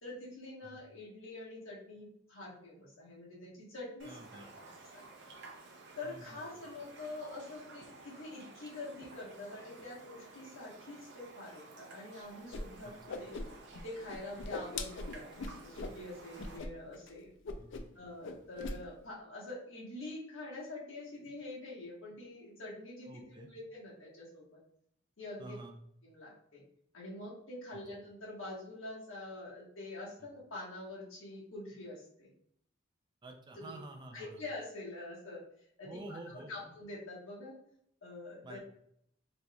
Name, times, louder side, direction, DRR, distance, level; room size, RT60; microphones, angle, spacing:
voice 1, 0.0-4.4 4.9-5.0 6.0-12.9 13.2-13.3 13.8-17.3 17.9-24.6 25.2-25.6 26.0-26.6 26.9-32.3 33.6-33.8 34.1-35.4 35.8-37.5 38.0-38.6, left 2 dB, 85° left, -5 dB, 1.4 m, -46 dB
voice 2, 4.0-4.5 6.0-6.4 12.8-13.2 17.6-17.9 23.1-23.5 25.4-25.8 27.7-27.8 30.2-30.3 33.2-34.4 35.8-36.7 38.4-38.6, right 2 dB, 25° right, 3 dB, 0.4 m, -49 dB
Raindrop, 4.0-16.6, right 3 dB, 60° right, 0.6 m, -54 dB
Whoosh swoosh swish, 12.5-12.6 12.9-13.8 14.1-16.0 16.4-16.7 16.9-17.1 17.4-18.0 18.2-18.8, left 3 dB, 65° left, 0.4 m, -40 dB
4.0 x 3.1 x 2.3 m, 0.71 s
head